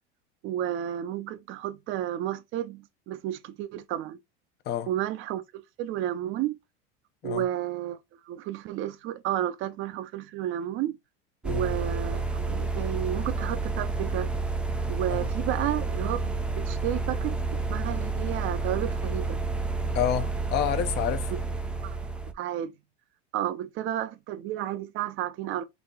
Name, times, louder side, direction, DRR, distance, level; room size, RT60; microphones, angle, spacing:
voice 1, 0.4-4.2 4.9-5.4 5.8-6.6 7.2-8.0 8.3-11.0 11.4-14.3 14.9-19.4 21.7-22.0 22.3-22.7 23.3-25.6, right 12 dB, 45° right, 0.7 m, -32 dB
sound 1, 11.4-22.3, right 3 dB, 5° right, 0.4 m, -30 dB
voice 2, 19.9-21.3, left 11 dB, 35° left, 0.7 m, -28 dB
4.0 x 2.8 x 4.1 m
supercardioid pair, 130°, 29 cm